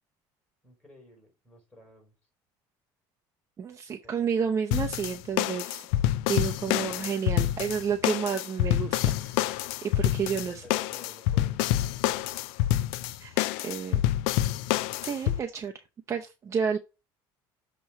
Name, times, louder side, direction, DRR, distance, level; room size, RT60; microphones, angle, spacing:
voice 1, 0.6-2.1 4.0-4.3 10.3-11.9, left 2 dB, 10° left, 3.8 m, -54 dB
voice 2, 3.6-5.9 6.3-10.6 13.2-14.0 15.0-15.8 16.1-16.8, right 7 dB, 30° right, 0.6 m, -31 dB
sound 1, 4.7-15.4, left 14 dB, 85° left, 0.4 m, -27 dB
7.0 x 3.1 x 5.7 m
cardioid pair, 125°, 10 cm